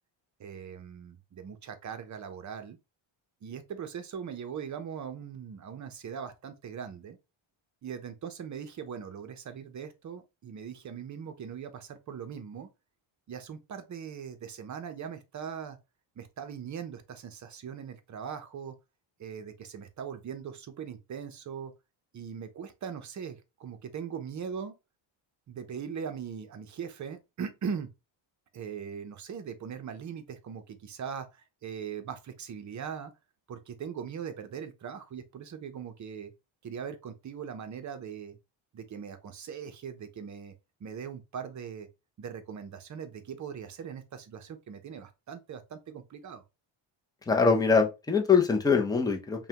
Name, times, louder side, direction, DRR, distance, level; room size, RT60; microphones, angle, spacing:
voice 1, 0.4-2.8 3.4-7.2 7.8-12.7 13.3-15.8 16.2-18.8 19.2-21.7 22.1-24.8 25.5-27.9 28.5-33.1 33.5-36.3 36.6-38.4 38.7-40.5 40.8-41.9 42.2-46.4, right 7 dB, 35° right, 0.7 m, -40 dB
voice 2, 47.3-49.5, left 5 dB, 10° left, 0.6 m, -23 dB
5.3 x 2.3 x 2.9 m
cardioid pair, 140°, 48 cm